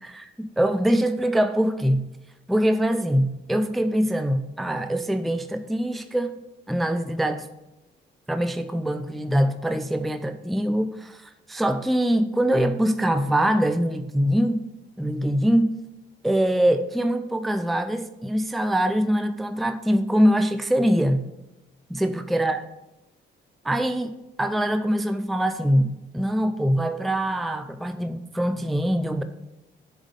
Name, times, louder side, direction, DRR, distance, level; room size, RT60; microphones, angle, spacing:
voice 1, 0.0-2.0 2.5-6.4 6.7-7.5 8.3-14.6 15.0-15.7 16.2-21.2 21.9-22.6 23.6-24.1 24.4-29.2, equal, ahead, 9 dB, 0.4 m, -23 dB
7.2 x 3.6 x 5.3 m, 0.92 s
cardioid pair, 90°, 20 cm